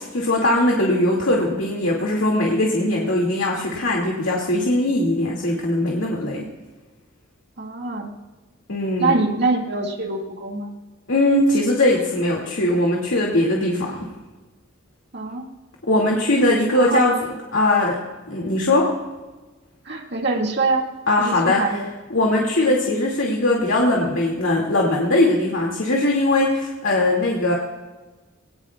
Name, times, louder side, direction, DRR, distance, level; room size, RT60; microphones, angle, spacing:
voice 1, 0.0-6.5 8.7-9.2 11.1-14.1 15.9-17.1 17.5-18.0 18.3-18.9 21.1-21.6 22.1-27.5, left 1 dB, 80° left, -3 dB, 2.3 m, -20 dB
voice 2, 7.6-8.1 9.0-10.7 15.1-15.5 16.7-17.1 19.9-20.9 21.2-21.9 22.7-22.8, right 3 dB, 60° right, 1 dB, 2.1 m, -24 dB
23.0 x 18.5 x 2.4 m, 1.2 s
head